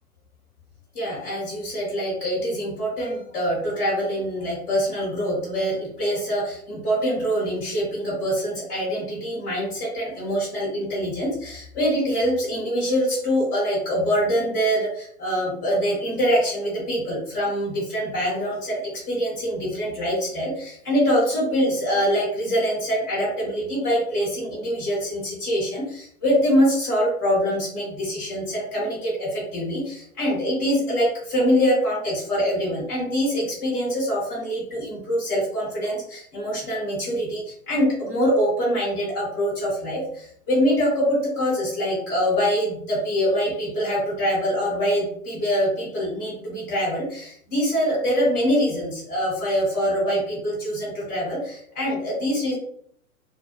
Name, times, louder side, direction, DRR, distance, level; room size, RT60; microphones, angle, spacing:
voice 1, 0.9-52.5, equal, 10° left, -7 dB, 0.4 m, -24 dB
2.4 x 2.2 x 2.7 m, 0.64 s
figure-of-eight pair, 110°, 44 cm